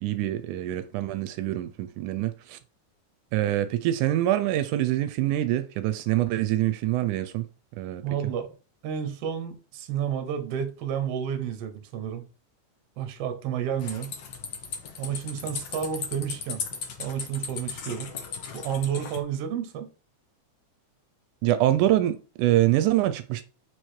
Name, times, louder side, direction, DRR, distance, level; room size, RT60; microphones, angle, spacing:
voice 1, 0.0-2.6 3.3-7.5 7.8-8.0 21.4-23.4, right 14 dB, 85° right, 2.0 m, -25 dB
voice 2, 8.0-8.5 8.8-12.3 13.0-14.1 15.0-16.6 17.0-18.1 18.5-19.9, right 8 dB, 65° right, 1.7 m, -31 dB
sound 1, 13.8-19.2, left 6 dB, 85° left, 1.0 m, -37 dB
4.9 x 4.7 x 4.3 m
omnidirectional pair, 3.6 m